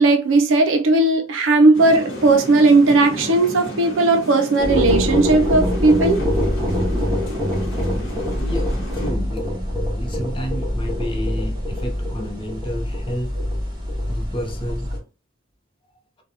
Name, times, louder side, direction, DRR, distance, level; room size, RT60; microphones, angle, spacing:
voice 1, 0.0-6.2, right 2 dB, 70° right, 0.5 m, -16 dB
sound 1, 1.7-9.1, left 1 dB, 65° left, 0.9 m, -33 dB
sound 2, 4.6-15.0, left 1 dB, 20° right, 1.1 m, -24 dB
voice 2, 8.3-9.5 10.0-13.3 14.1-14.9, equal, 25° left, 0.6 m, -30 dB
2.7 x 2.2 x 2.6 m
head